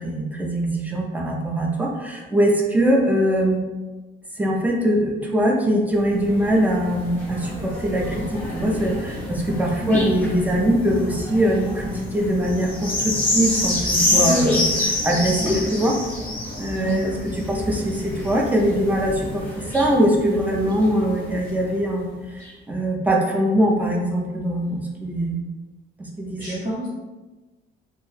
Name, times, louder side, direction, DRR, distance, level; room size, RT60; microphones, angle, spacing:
voice 1, 0.0-3.6 4.3-16.0 16.6-25.4 26.0-26.7, equal, 10° right, -1 dB, 0.4 m, -22 dB
sound 1, 6.0-21.8 22.4-22.5, left 1 dB, 10° left, 0.9 m, -28 dB
voice 2, 9.8-10.3 14.0-14.9 15.4-15.5 16.8-17.2 26.4-26.9, equal, 40° right, -10 dB, 0.9 m, -28 dB
2.7 x 2.1 x 3.2 m, 1.2 s
cardioid pair, 145°, 19 cm